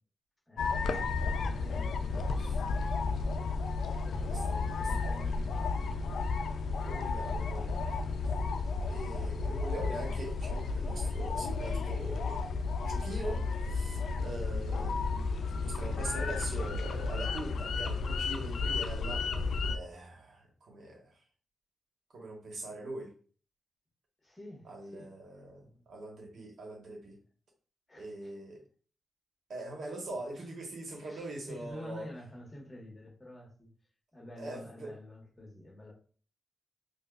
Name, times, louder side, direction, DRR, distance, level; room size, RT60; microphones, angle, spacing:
voice 1, 0.5-3.1 4.1-5.8 15.9-16.1 24.2-25.1 27.9-28.3 30.3-30.5 30.9-33.7 34.1-35.9, left 1 dB, 15° left, 1.5 m, -49 dB
sound 1, 0.6-19.8, left 4 dB, 75° left, 0.3 m, -32 dB
voice 2, 4.3-5.3 6.8-7.9 8.2-8.3 8.9-12.4 12.8-15.0 15.6-19.3 19.7-21.2 22.1-23.1 24.6-27.2 27.9-28.6 29.5-32.1 34.4-35.0, right 2 dB, 70° right, 1.1 m, -42 dB
4.8 x 2.3 x 2.4 m
cardioid pair, 95°, 0 cm